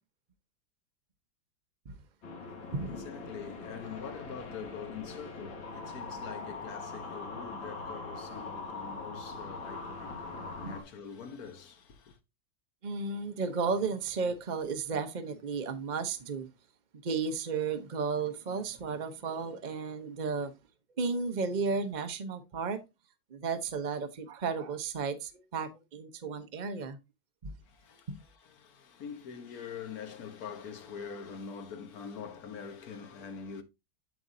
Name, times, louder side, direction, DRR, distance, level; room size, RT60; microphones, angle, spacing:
sound 1, 2.2-10.8, left 3 dB, 75° left, 2.4 m, -42 dB
voice 1, 2.6-12.2 27.6-33.6, left 6 dB, 55° left, 1.4 m, -44 dB
voice 2, 12.8-16.5 17.0-20.5 21.0-22.8 23.3-27.0 27.4-27.5 28.1-28.2, right 5 dB, 70° right, 0.4 m, -33 dB
7.9 x 7.9 x 2.6 m
omnidirectional pair, 2.1 m